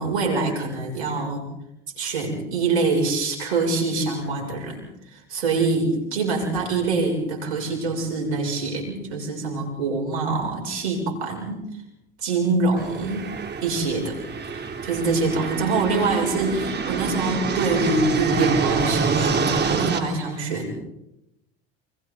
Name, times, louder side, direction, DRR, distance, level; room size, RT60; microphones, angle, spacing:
voice 1, 0.0-1.5 2.0-11.7 12.2-13.3 13.6-20.7, right 3 dB, 85° right, 1 dB, 7.4 m, -25 dB
sound 1, 12.8-20.0, right 5 dB, 30° right, 3.4 m, -26 dB
27.5 x 24.5 x 4.1 m, 0.86 s
hypercardioid pair, 85°, 32 cm